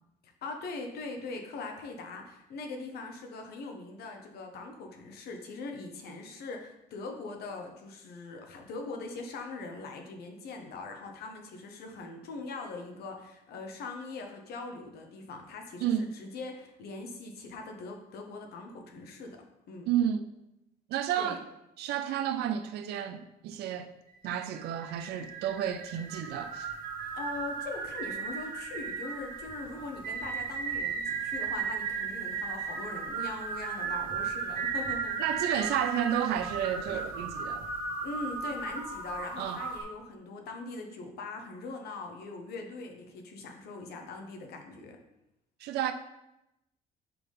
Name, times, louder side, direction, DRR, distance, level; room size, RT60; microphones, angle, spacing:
voice 1, 0.2-19.9 21.2-21.4 27.1-35.2 38.0-45.0, left 3 dB, 70° left, 1.2 m, -41 dB
voice 2, 19.9-20.3 20.9-21.4 21.8-23.9 24.2-26.7 35.2-37.7 39.4-39.6 45.6-45.9, right 10 dB, 75° right, 0.5 m, -31 dB
sound 1, 24.1-39.8, right 5 dB, 55° right, 1.6 m, -36 dB
5.9 x 3.6 x 5.4 m
cardioid pair, 110°, 17 cm